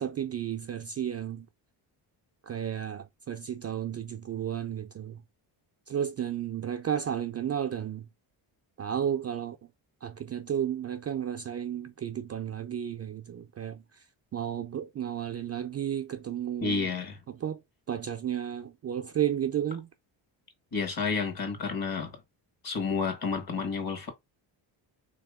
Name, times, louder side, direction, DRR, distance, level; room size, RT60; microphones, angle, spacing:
voice 1, 0.0-1.5 2.5-5.2 5.9-8.1 8.8-9.6 10.0-13.8 14.3-16.9 17.3-17.6 17.9-19.9, right 9 dB, 35° right, 0.4 m, -33 dB
voice 2, 16.6-17.2 20.7-22.1 22.6-24.1, left 5 dB, 45° left, 1.4 m, -30 dB
3.1 x 2.9 x 3.5 m
cardioid pair, 80°, 48 cm